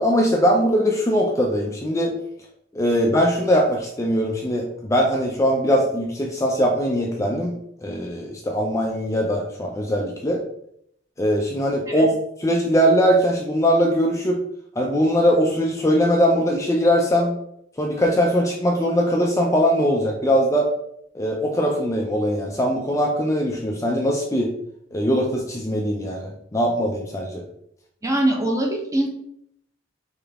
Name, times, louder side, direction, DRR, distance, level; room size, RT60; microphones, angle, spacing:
voice 1, 0.0-2.1 2.7-10.4 11.2-12.1 12.4-14.4 14.8-17.4 17.8-20.7 21.1-24.5 24.9-27.4, equal, 15° left, 0 dB, 0.4 m, -21 dB
voice 2, 28.0-29.1, right 1 dB, 15° right, 0 dB, 0.8 m, -22 dB
3.9 x 3.8 x 3.4 m, 0.72 s
head